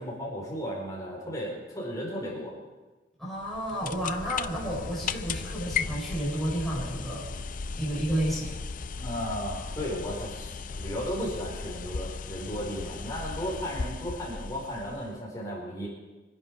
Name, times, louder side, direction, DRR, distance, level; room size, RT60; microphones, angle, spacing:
voice 1, 0.0-2.5 9.0-15.9, equal, 20° left, -4 dB, 4.6 m, -35 dB
voice 2, 3.2-7.3 7.8-8.6, equal, ahead, -6 dB, 4.5 m, -31 dB
sound 1, 3.4-15.2, left 5 dB, 50° left, 0.5 m, -36 dB
25.0 x 11.0 x 4.8 m, 1.2 s
head